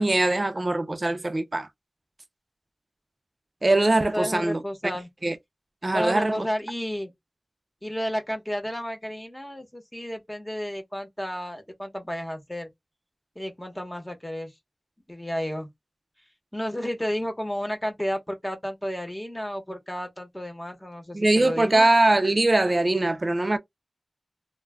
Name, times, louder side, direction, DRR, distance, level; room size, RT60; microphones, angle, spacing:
voice 1, 0.0-1.7 3.6-4.6 5.2-5.4 5.8-6.5 21.1-23.6, right 2 dB, 45° right, 0.5 m, -22 dB
voice 2, 4.1-5.1 5.9-7.1 7.8-12.7 13.4-14.5 15.1-15.7 16.5-21.9, equal, 10° left, 0.9 m, -32 dB
2.2 x 2.1 x 3.4 m
wide cardioid pair, 50°, 0 cm